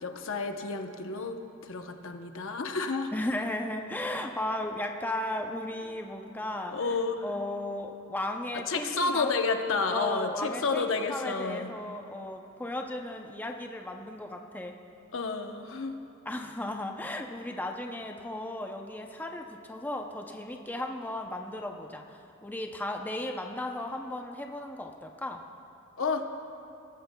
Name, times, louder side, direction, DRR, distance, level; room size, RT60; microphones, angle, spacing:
voice 1, 0.0-1.4 1.6-3.1 6.7-7.2 8.7-11.7 15.1-15.9 26.0-26.3, left 4 dB, 65° left, 5 dB, 0.8 m, -30 dB
voice 2, 3.1-9.3 9.9-14.7 16.3-25.4, left 1 dB, 10° left, 3 dB, 0.5 m, -35 dB
21.5 x 13.5 x 2.2 m, 2.7 s
head